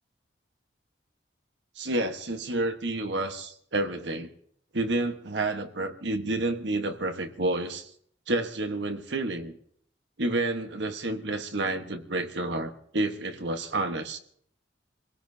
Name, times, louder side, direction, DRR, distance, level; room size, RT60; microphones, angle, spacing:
voice 1, 1.7-4.3 4.7-7.9 8.3-9.6 10.2-14.2, right 2 dB, 75° right, 6 dB, 1.4 m, -29 dB
26.0 x 17.5 x 2.8 m, 0.65 s
head